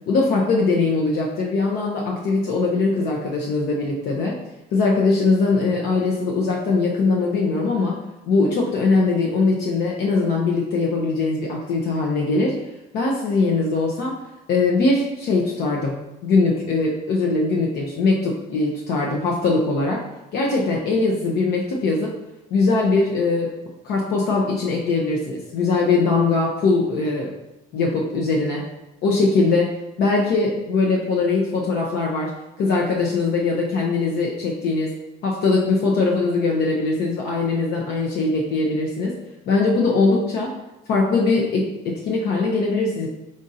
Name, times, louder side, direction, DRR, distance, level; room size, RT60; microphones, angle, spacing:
voice 1, 0.1-4.4 4.7-8.0 8.3-12.6 12.9-14.1 14.5-20.0 20.3-22.1 22.5-23.5 23.8-27.3 27.7-28.6 29.0-29.7 30.0-32.3 32.6-34.9 35.2-39.1 39.5-40.5 40.9-43.1, left 3 dB, 70° left, -2 dB, 0.7 m, -21 dB
5.1 x 2.5 x 4.1 m, 0.95 s
cardioid pair, 110°, 17 cm